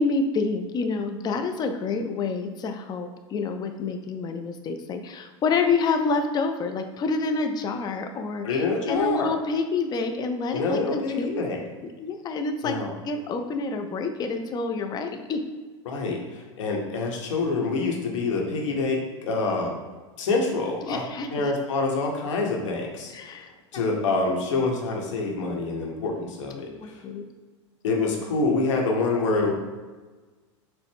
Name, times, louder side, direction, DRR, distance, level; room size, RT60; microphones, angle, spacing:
voice 1, 0.0-11.4 12.0-12.7 13.0-15.5 20.8-21.3 23.1-23.9 26.8-27.2, left 4 dB, 25° left, 6 dB, 0.4 m, -28 dB
voice 2, 8.4-9.3 10.5-11.6 12.6-12.9 15.9-19.7 20.2-21.0 21.3-23.1 23.7-26.9 27.8-29.5, left 3 dB, 75° left, 1 dB, 0.9 m, -26 dB
4.4 x 2.0 x 3.5 m, 1.3 s
hypercardioid pair, 95°, 16 cm